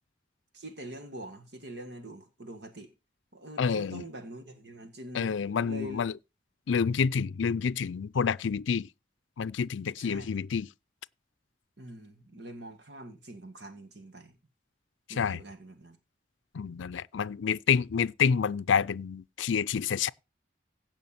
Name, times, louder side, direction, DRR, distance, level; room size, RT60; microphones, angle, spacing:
voice 1, 0.5-2.9 3.3-5.3 5.6-6.1 10.0-10.3 11.8-14.3 15.1-16.0, right 1 dB, 65° right, 1.9 m, -44 dB
voice 2, 3.6-4.0 5.1-6.1 6.7-8.9 9.4-10.7 15.2-15.4 16.5-20.1, left 6 dB, 90° left, 0.4 m, -28 dB
16.5 x 5.8 x 4.3 m
head